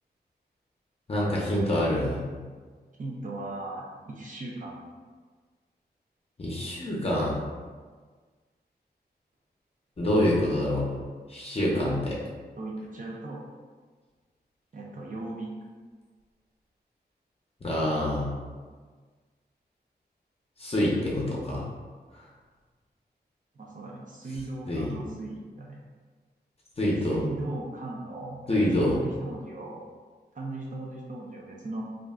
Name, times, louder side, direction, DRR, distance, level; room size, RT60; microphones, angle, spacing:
voice 1, 1.1-2.2 6.4-7.4 10.0-10.8 11.3-12.1 17.6-18.3 20.6-21.7 22.1-22.2 24.7-24.9 26.8-27.2 28.5-28.9, left 1 dB, 35° left, -5 dB, 0.6 m, -26 dB
voice 2, 3.0-4.8 11.7-12.0 12.6-13.4 14.7-15.5 23.6-25.8 27.1-29.8 30.3-31.8, right 2 dB, 50° right, -3 dB, 0.5 m, -37 dB
2.4 x 2.1 x 3.5 m, 1.5 s
wide cardioid pair, 100°, 17 cm